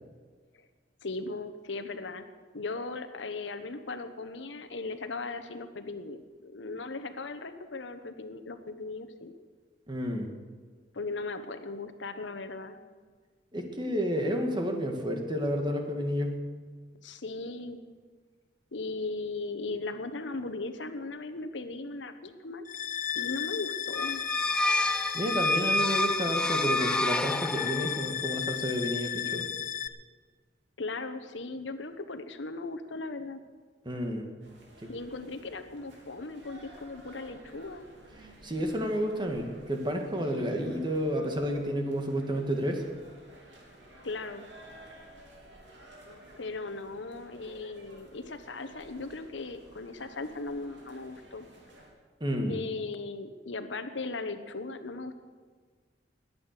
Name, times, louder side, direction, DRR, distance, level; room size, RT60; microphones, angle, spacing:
voice 1, 1.0-2.2 2.5-9.3 10.9-12.8 17.0-17.8 18.7-22.6 23.1-24.2 30.8-33.4 34.9-37.8 44.0-44.5 46.4-51.5 52.5-55.1, left 3 dB, 80° left, 9 dB, 1.1 m, -38 dB
voice 2, 9.9-10.3 13.5-16.4 25.1-29.5 33.9-34.3 34.8-34.9 38.4-42.8 52.2-52.6, equal, 25° right, 3 dB, 1.8 m, -30 dB
sound 1, 22.7-29.9, left 10 dB, 45° left, 0.6 m, -34 dB
sound 2, 23.9-28.1, left 1 dB, 5° left, 0.3 m, -29 dB
sound 3, 34.4-51.9, right 1 dB, 75° right, 3.3 m, -53 dB
20.5 x 8.8 x 6.6 m, 1.5 s
head